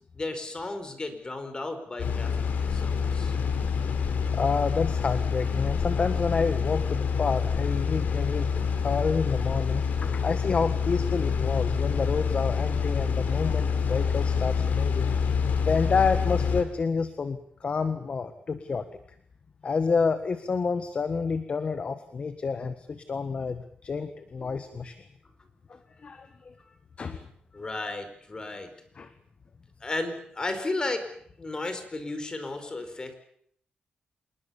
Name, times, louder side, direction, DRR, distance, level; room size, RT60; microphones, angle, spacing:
voice 1, 0.1-2.3 2.7-3.3 18.5-18.6 24.4-24.5 27.5-28.7 29.8-31.0 31.4-33.1, left 2 dB, 25° left, 8 dB, 4.9 m, -34 dB
sound 1, 2.0-16.6, left 6 dB, 70° left, 4.0 m, -27 dB
voice 2, 4.3-8.5 8.7-15.1 15.6-18.8 19.6-25.0 25.7-26.5 27.0-27.3 29.0-29.1, left 5 dB, 45° left, 10 dB, 1.6 m, -29 dB
27.0 x 20.5 x 7.2 m, 0.64 s
cardioid pair, 115°, 3 cm